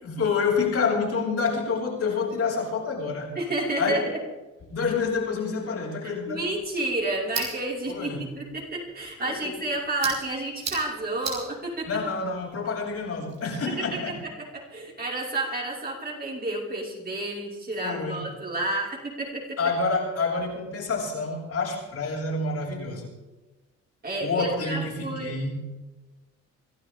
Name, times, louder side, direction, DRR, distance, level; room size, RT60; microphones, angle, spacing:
voice 1, 0.0-3.4 3.8-4.1 4.7-6.5 7.9-8.3 9.2-9.5 11.9-14.2 17.8-18.3 19.6-23.1 24.2-25.6, left 4 dB, 55° left, -3 dB, 6.9 m, -28 dB
voice 2, 3.4-4.2 6.0-11.9 13.7-14.0 14.4-19.6 24.0-25.3, right 2 dB, 30° right, -4 dB, 5.7 m, -30 dB
sound 1, 6.3-14.2, right 4 dB, 60° right, 6.2 m, -40 dB
26.0 x 12.5 x 3.8 m, 1.2 s
cardioid pair, 90°, 30 cm